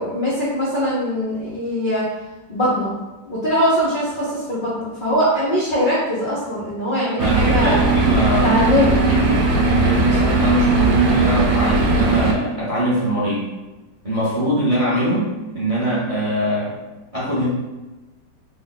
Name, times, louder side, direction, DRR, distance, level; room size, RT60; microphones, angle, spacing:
voice 1, 0.0-2.1 2.5-2.9 3.3-7.8 8.4-9.0, equal, 75° left, -8 dB, 0.4 m, -21 dB
voice 2, 7.2-13.5 14.0-15.3 15.5-16.7 17.1-17.4, right 1 dB, 35° right, -9 dB, 0.6 m, -22 dB
sound 1, 7.2-12.3, right 3 dB, 75° right, 1.1 m, -18 dB
3.0 x 2.1 x 4.0 m, 1.1 s
omnidirectional pair, 1.9 m